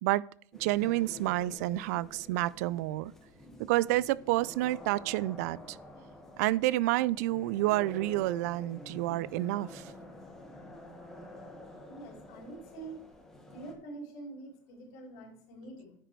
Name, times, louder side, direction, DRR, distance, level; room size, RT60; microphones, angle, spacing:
sound 1, 0.5-13.7, left 1 dB, 5° left, 1.2 m, -49 dB
voice 1, 0.6-3.1 3.7-5.8 6.4-9.9, right 17 dB, 85° right, 0.3 m, -29 dB
voice 2, 11.9-13.0 13.5-16.0, right 2 dB, 75° left, 3.9 m, -46 dB
10.0 x 5.1 x 4.4 m
cardioid pair, 165°, 8 cm